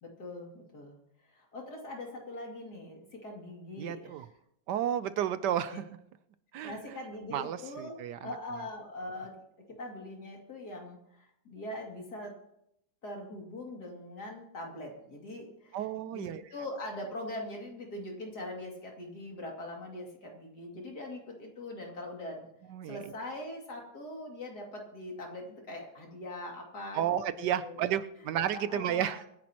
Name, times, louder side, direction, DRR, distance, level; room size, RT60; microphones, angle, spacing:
voice 1, 0.0-1.0 1.2-4.3 5.7-5.8 6.6-9.3 9.8-12.3 13.0-22.5 22.9-27.9 28.5-29.2, left 1 dB, 60° left, 0 dB, 3.1 m, -42 dB
voice 2, 3.8-4.3 4.7-5.8 6.5-7.0 7.3-8.3 15.7-16.4 22.7-23.0 26.9-29.2, right 10 dB, 75° right, 13 dB, 1.2 m, -32 dB
24.5 x 10.5 x 2.9 m, 0.76 s
omnidirectional pair, 1.9 m